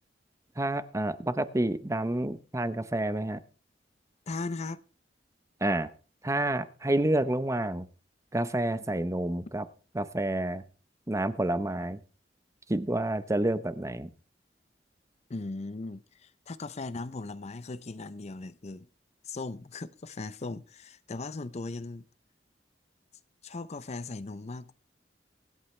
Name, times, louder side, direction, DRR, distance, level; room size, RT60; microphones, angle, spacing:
voice 1, 0.6-3.4 5.6-5.9 6.2-7.9 8.3-9.6 9.9-10.6 11.1-12.0 12.7-14.1, right 1 dB, 15° right, 0.7 m, -29 dB
voice 2, 4.3-4.8 15.3-18.9 19.2-22.0 23.4-24.7, left 3 dB, 40° left, 0.5 m, -38 dB
24.0 x 9.0 x 3.2 m
head